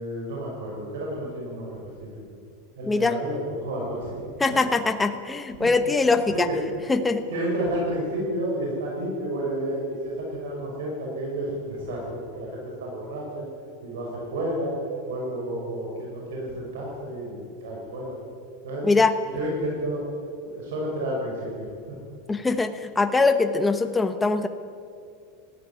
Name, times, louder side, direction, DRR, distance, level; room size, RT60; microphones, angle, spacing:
voice 1, 0.0-2.1 2.8-4.2 5.6-6.6 7.3-13.5 13.8-14.8 15.1-18.2 18.6-18.9 19.3-20.0 20.4-22.0, right 1 dB, 80° right, -2 dB, 6.4 m, -31 dB
voice 2, 2.9-3.2 4.4-6.5 6.9-7.2 18.8-19.1 22.3-24.5, left 3 dB, 5° left, 8 dB, 0.9 m, -22 dB
19.5 x 14.5 x 9.9 m, 2.4 s
supercardioid pair, 180°, 0 cm